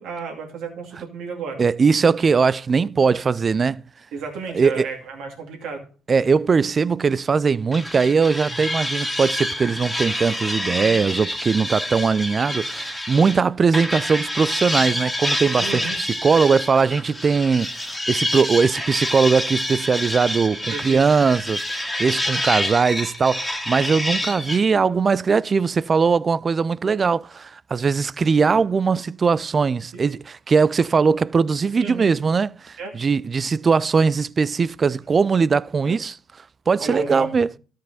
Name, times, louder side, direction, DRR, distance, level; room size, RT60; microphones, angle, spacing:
voice 1, 0.0-1.6 4.1-5.8 15.6-16.0 20.7-21.0 29.9-30.0 31.8-32.1 32.8-32.9 35.8-36.0 36.8-37.3, right 5 dB, 70° right, 2.2 m, -32 dB
voice 2, 1.6-3.8 4.5-4.9 6.1-36.2 36.7-37.5, right 5 dB, 40° right, 0.3 m, -20 dB
sound 1, 7.7-13.4 13.7-24.6, left 1 dB, 10° left, 1.9 m, -27 dB
13.0 x 5.1 x 3.9 m
hypercardioid pair, 55°, 0 cm